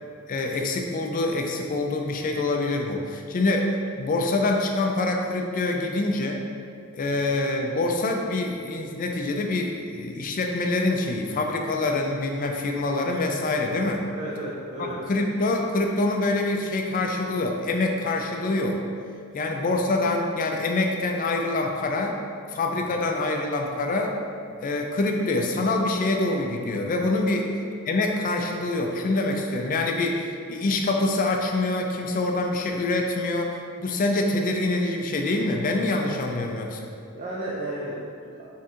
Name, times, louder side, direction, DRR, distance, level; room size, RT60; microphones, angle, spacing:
voice 1, 0.3-6.4 6.9-14.0 14.8-18.8 19.3-22.2 22.5-24.1 24.6-27.5 27.9-36.8, left 2 dB, 40° left, 2 dB, 0.3 m, -25 dB
voice 2, 14.1-15.0 22.7-23.1 24.6-24.8 27.3-27.4 37.1-38.5, right 1 dB, 35° right, -6 dB, 0.4 m, -34 dB
4.3 x 3.5 x 2.5 m, 2.3 s
head